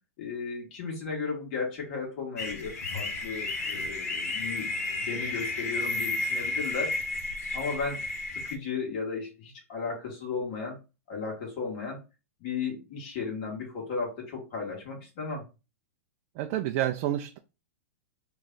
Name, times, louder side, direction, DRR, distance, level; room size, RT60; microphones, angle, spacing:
voice 1, 0.2-4.7 5.0-6.9 7.5-8.0 8.3-10.8 11.1-12.0 12.4-15.4, left 5 dB, 50° left, -1 dB, 1.6 m, -35 dB
sound 1, 2.4-8.6, left 2 dB, 70° left, 0.8 m, -32 dB
voice 2, 16.4-17.4, right 12 dB, 45° right, 5 dB, 0.4 m, -29 dB
3.1 x 2.3 x 3.8 m, 0.29 s
hypercardioid pair, 105°, 9 cm